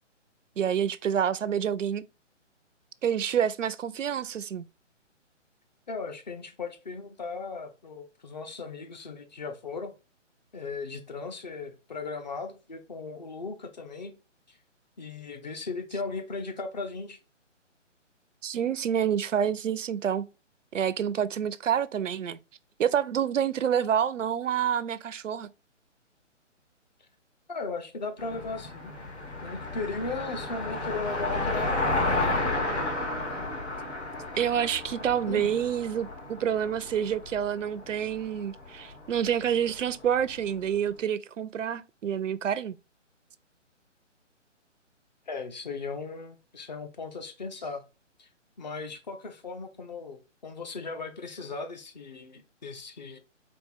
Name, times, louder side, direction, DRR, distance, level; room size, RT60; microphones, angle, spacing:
voice 1, 0.6-2.0 3.0-4.7 18.4-20.2 20.7-22.4 22.8-25.5 34.4-42.8, right 8 dB, 75° right, 0.5 m, -28 dB
voice 2, 5.9-9.9 10.5-14.1 14.5-14.6 15.0-17.2 27.5-28.9 29.4-32.6 35.3-35.6 45.3-47.8 48.2-48.3 48.6-53.2, left 4 dB, 35° left, 0.6 m, -37 dB
Car passing by, 28.2-40.5, left 2 dB, 60° left, 2.5 m, -32 dB
4.3 x 2.6 x 3.4 m
figure-of-eight pair, 140°, 37 cm